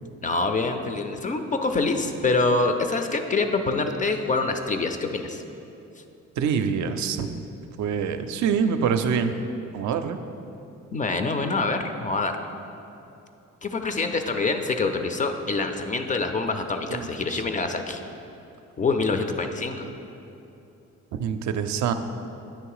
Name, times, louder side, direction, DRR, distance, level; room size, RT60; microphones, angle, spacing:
voice 1, 0.2-5.4 6.0-6.1 10.9-12.4 13.6-18.0 18.8-19.9, left 3 dB, 25° left, 7 dB, 0.4 m, -25 dB
voice 2, 6.4-7.3 7.8-9.4 9.7-10.2 16.9-17.4 21.1-21.9, right 6 dB, 70° right, 8 dB, 0.4 m, -25 dB
8.5 x 3.1 x 4.7 m, 2.8 s
cardioid pair, 90°, 30 cm